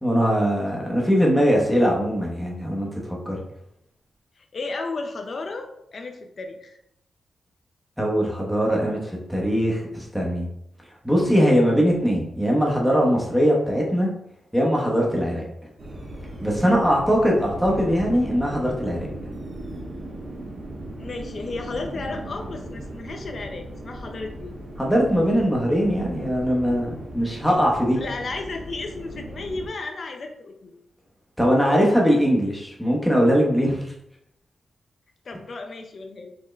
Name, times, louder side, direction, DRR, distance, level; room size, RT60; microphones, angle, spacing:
voice 1, 0.0-3.4 8.0-10.5 11.0-14.1 14.5-15.4 16.4-19.1 24.8-28.0 31.4-33.8, equal, ahead, -2 dB, 0.9 m, -21 dB
voice 2, 4.4-6.8 21.0-24.5 27.9-30.7 35.2-36.3, left 3 dB, 45° left, 5 dB, 0.6 m, -34 dB
sound 1, 15.8-29.7, right 1 dB, 40° right, 1.2 m, -37 dB
4.3 x 3.6 x 3.2 m, 0.78 s
wide cardioid pair, 165°, 0 cm